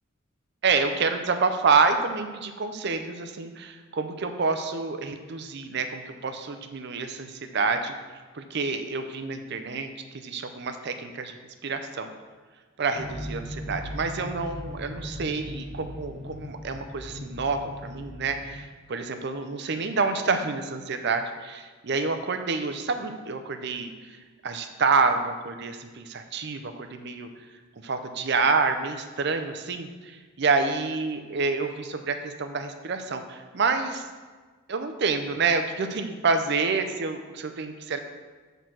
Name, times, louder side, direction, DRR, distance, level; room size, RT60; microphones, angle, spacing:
voice 1, 0.6-7.9 8.3-11.3 11.6-12.1 12.8-23.9 24.4-27.3 27.8-34.0 34.7-38.0, right 4 dB, 55° right, 7 dB, 0.6 m, -28 dB
sound 1, 12.9-18.5, equal, ahead, 1.5 m, -38 dB
6.5 x 3.9 x 6.0 m, 1.4 s
head